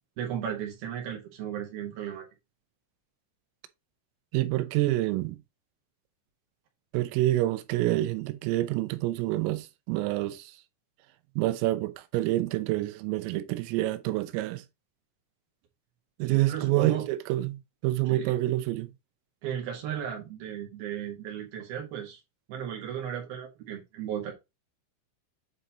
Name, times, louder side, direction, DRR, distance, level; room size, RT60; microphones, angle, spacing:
voice 1, 0.2-2.3 16.3-17.1 18.1-18.3 19.4-22.2 22.5-24.3, right 9 dB, 65° right, 2.8 m, -35 dB
voice 2, 4.3-5.4 6.9-10.5 11.4-14.6 16.2-18.9, right 16 dB, 90° right, 3.3 m, -27 dB
8.9 x 4.0 x 3.0 m
omnidirectional pair, 5.8 m